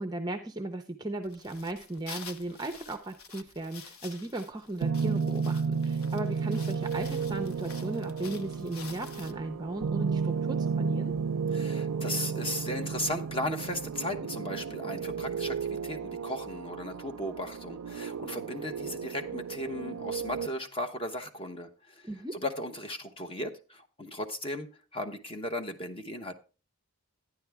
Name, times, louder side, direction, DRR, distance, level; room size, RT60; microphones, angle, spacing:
voice 1, 0.0-11.1 22.0-22.3, right 2 dB, 20° right, 0.5 m, -36 dB
sound 1, 1.2-9.3, left 5 dB, 75° left, 1.0 m, -49 dB
sound 2, 4.8-20.5, right 5 dB, 90° right, 0.4 m, -33 dB
sound 3, 6.7-13.4, equal, 55° left, 5.6 m, -61 dB
voice 2, 11.5-26.3, left 1 dB, 25° left, 0.9 m, -36 dB
12.0 x 9.8 x 3.5 m
head